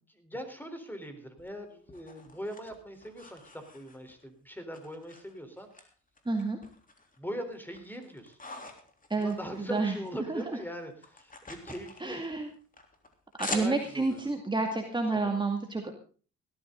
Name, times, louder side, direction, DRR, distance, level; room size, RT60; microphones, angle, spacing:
voice 1, 0.1-5.9 7.2-8.4 9.2-12.2 13.5-14.2 15.3-15.4, equal, 5° left, 8 dB, 3.9 m, -41 dB
sound 1, 1.4-4.2 4.7-5.8 6.2-7.2 7.5-10.1 10.4-14.2, left 2 dB, 25° left, 3.4 m, -44 dB
voice 2, 6.3-6.6 9.1-9.3 9.7-9.9 10.3-10.4 12.0-12.5 13.4-15.9, right 3 dB, 15° right, 3 dB, 2.2 m, -29 dB
17.5 x 13.5 x 3.9 m, 0.39 s
cardioid pair, 90°, 30 cm